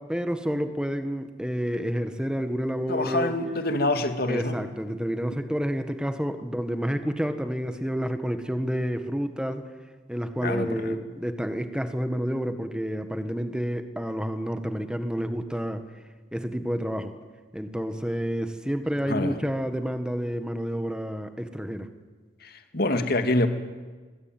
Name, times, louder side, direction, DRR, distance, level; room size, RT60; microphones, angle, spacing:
voice 1, 0.0-3.3 4.3-9.7 10.1-15.8 16.3-17.1 17.5-21.9, equal, 5° right, 8 dB, 1.6 m, -29 dB
voice 2, 2.9-4.5 10.4-11.0 19.1-19.3 22.4-23.5, left 2 dB, 50° left, 7 dB, 2.3 m, -26 dB
27.0 x 21.0 x 9.2 m, 1.4 s
head